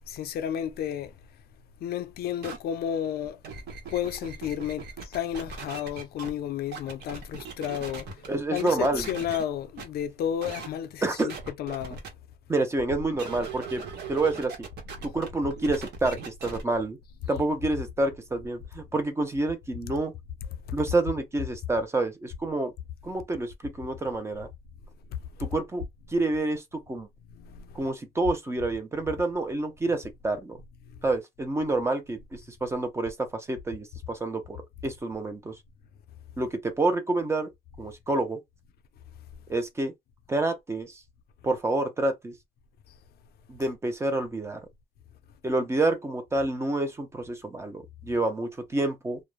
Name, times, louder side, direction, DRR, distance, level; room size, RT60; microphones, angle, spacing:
voice 1, 0.1-1.2 1.8-3.4 3.9-12.0 14.2-14.3 14.9-15.2 17.2-17.4 20.4-20.5 25.1-25.6 27.3-27.9 28.2-28.3 29.9-30.0 30.9-31.2, left 10 dB, 70° left, 0.4 m, -33 dB
sound 1, 2.4-2.6 3.2-6.3 6.7-8.3 8.6-9.4 9.8-9.9 10.4-10.7 11.2-12.1 13.1-16.6, right 5 dB, 80° right, 0.9 m, -39 dB
voice 2, 8.3-9.1 11.0-11.3 12.5-13.8 14.1-14.6 15.0-17.0 17.3-20.1 20.7-22.7 23.0-24.5 25.4-25.8 26.1-27.1 27.7-30.6 31.0-34.6 34.8-35.6 36.4-37.5 37.8-38.4 39.5-39.9 40.3-41.0 41.4-42.3 43.5-44.6 45.4-49.2, right 2 dB, 15° right, 0.5 m, -28 dB
2.4 x 2.0 x 3.0 m
cardioid pair, 155°, 17 cm